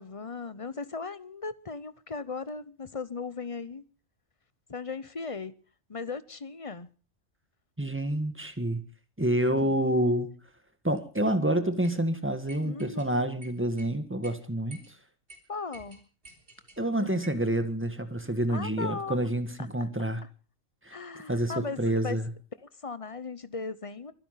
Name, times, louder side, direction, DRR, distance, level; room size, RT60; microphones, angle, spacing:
voice 1, 0.0-3.8 4.7-5.5 5.9-6.9 9.6-9.8 12.6-13.3 15.5-16.0 17.0-17.1 18.5-19.3 19.6-19.7 20.9-22.2 22.6-24.1, left 4 dB, 30° left, 0.8 m, -37 dB
voice 2, 7.8-8.8 9.2-10.3 10.8-15.0 16.8-20.2 20.8-21.0 21.3-22.3, right 1 dB, 10° right, 1.7 m, -28 dB
sound 1, 11.8-12.0 12.5-13.1 13.4-13.9 14.2-14.4 14.7-14.9 15.3-15.4 15.7-16.8 17.2-17.5, right 2 dB, 45° right, 3.9 m, -50 dB
24.0 x 10.5 x 5.8 m
omnidirectional pair, 1.4 m